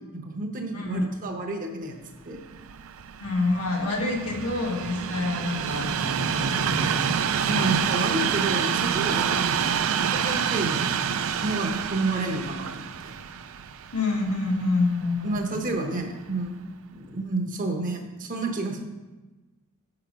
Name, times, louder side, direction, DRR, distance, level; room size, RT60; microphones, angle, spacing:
voice 1, 0.0-2.0 2.2-2.4 3.9-4.0 7.4-13.1 15.2-18.8, right 2 dB, 40° right, 2 dB, 0.9 m, -30 dB
Train, 2.4-15.6 16.3-16.4, right 7 dB, 65° right, 0.4 m, -28 dB
voice 2, 3.2-7.7 13.9-15.6, left 3 dB, 80° left, -1 dB, 1.5 m, -28 dB
6.4 x 5.8 x 5.1 m, 1.2 s
head